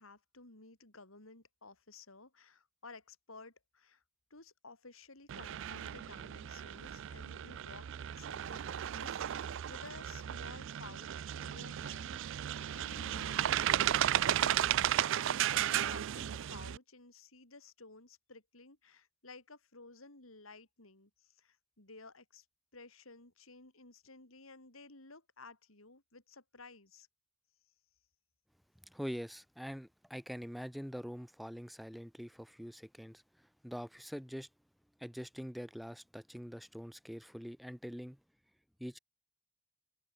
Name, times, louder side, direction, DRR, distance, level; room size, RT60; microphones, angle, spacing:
voice 1, 0.0-4.0 4.3-22.4 22.7-27.1, left 3 dB, 85° left, 5.0 m, -55 dB
sound 1, 5.3-16.8, right 11 dB, 65° right, 0.4 m, -34 dB
voice 2, 28.9-34.5 35.0-38.2 38.8-39.0, equal, ahead, 2.2 m, -44 dB
head